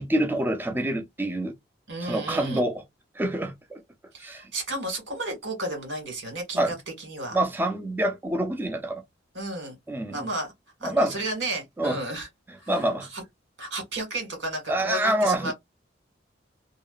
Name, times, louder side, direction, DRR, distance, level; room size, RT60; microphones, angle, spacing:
voice 1, 0.0-1.5 2.0-2.7 3.2-3.8 4.2-4.4 6.6-6.7 7.3-9.0 9.9-10.1 10.8-11.1 11.8-12.0 12.7-13.1 14.7-15.5, right 1 dB, 10° right, 0.4 m, -26 dB
voice 2, 1.9-2.6 4.1-7.4 9.3-9.8 10.1-10.5 10.8-12.3 12.6-13.2 13.6-15.5, right 1 dB, 85° right, 1.8 m, -33 dB
2.8 x 2.2 x 2.4 m
head